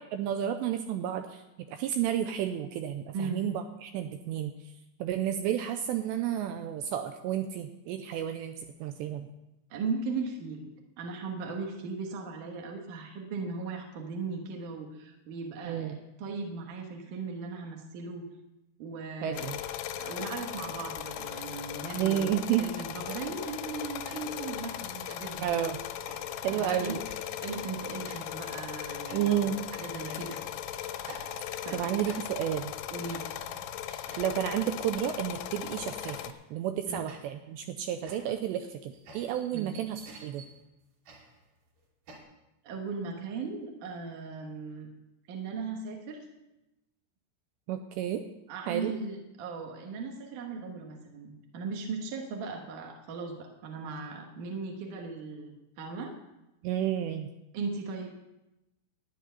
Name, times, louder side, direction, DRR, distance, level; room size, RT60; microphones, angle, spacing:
voice 1, 0.0-1.4 1.7-4.5 5.0-8.6 8.8-9.3 15.6-16.0 19.2-19.6 22.0-22.7 25.4-25.8 26.4-27.0 29.1-29.6 31.7-32.7 33.9-40.4 47.7-48.2 48.7-48.9 56.6-57.3, right 10 dB, 90° right, 7 dB, 2.5 m, -31 dB
voice 2, 3.1-3.4 9.7-18.2 18.8-19.5 20.0-22.3 22.6-25.4 26.5-26.9 27.4-29.5 29.7-30.4 31.6-31.8 32.9-33.3 36.9-37.0 39.5-39.7 42.6-44.9 45.3-46.2 48.5-56.1 57.5-58.1, right 4 dB, 70° right, 1 dB, 2.0 m, -38 dB
sound 1, 19.3-36.3, left 10 dB, 85° left, 3.2 m, -38 dB
sound 2, 22.9-23.8 24.1-24.5 25.1-25.5 26.1-26.5 27.1-27.4 28.1-28.5 29.1-29.6 30.1-30.6 31.1-31.7 32.1-32.6 33.1-33.5 34.1-34.5 35.1-35.4 36.1-36.6 37.1-42.2, right 2 dB, 50° right, 3.7 m, -51 dB
13.5 x 9.3 x 5.6 m, 0.93 s
omnidirectional pair, 5.6 m